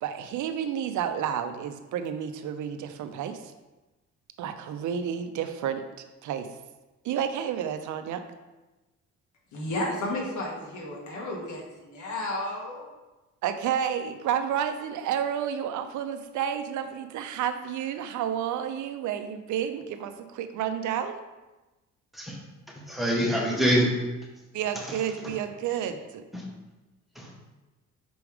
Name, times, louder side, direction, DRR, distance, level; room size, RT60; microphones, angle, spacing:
voice 1, 0.0-3.5 4.4-5.8 6.2-6.5 7.0-8.2 13.4-21.2 24.5-26.2, right 9 dB, 75° right, 9 dB, 0.6 m, -30 dB
voice 2, 9.5-12.9, left 1 dB, 70° left, -2 dB, 1.8 m, -32 dB
voice 3, 22.9-23.9 24.7-25.0 25.2-25.3 26.3-26.5 27.1-27.3, equal, ahead, -2 dB, 1.4 m, -25 dB
6.0 x 4.7 x 3.5 m, 1.1 s
cardioid pair, 90°, 30 cm